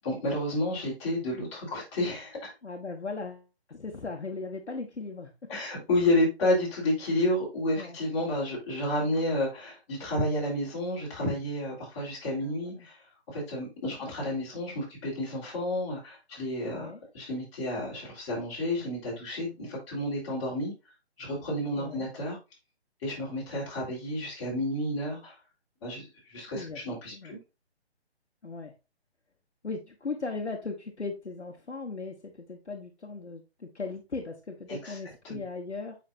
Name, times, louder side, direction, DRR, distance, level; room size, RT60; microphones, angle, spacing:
voice 1, 0.0-2.5 5.5-13.0 13.3-16.9 17.1-20.7 21.2-22.4 23.0-25.3 25.8-27.4 34.7-35.0 35.2-35.4, left 1 dB, 25° left, -5 dB, 3.7 m, -30 dB
voice 2, 2.6-5.3 7.8-8.0 12.4-12.9 14.0-14.1 16.7-17.0 21.8-22.1 26.5-26.8 27.1-27.3 28.4-28.7 29.6-36.0, left 4 dB, 80° left, 2 dB, 1.4 m, -38 dB
7.4 x 5.7 x 2.6 m, 0.27 s
figure-of-eight pair, 150°, 33 cm